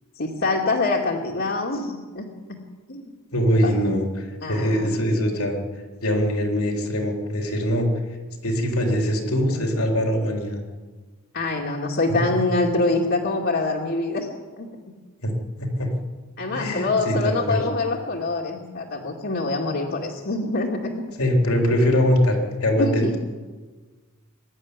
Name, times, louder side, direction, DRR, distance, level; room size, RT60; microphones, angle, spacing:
voice 1, 0.2-2.6 2.9-3.1 3.6-3.7 4.4-4.9 11.3-14.3 14.6-14.7 16.4-21.0 22.8-23.2, left 2 dB, 55° left, -3 dB, 2.4 m, -25 dB
voice 2, 3.3-5.6 6.0-7.9 8.4-10.6 12.4-12.5 15.2-15.3 15.6-15.9 16.5-17.6 21.2-23.2, equal, 80° left, 2 dB, 4.0 m, -22 dB
22.5 x 12.5 x 9.8 m, 1.4 s
head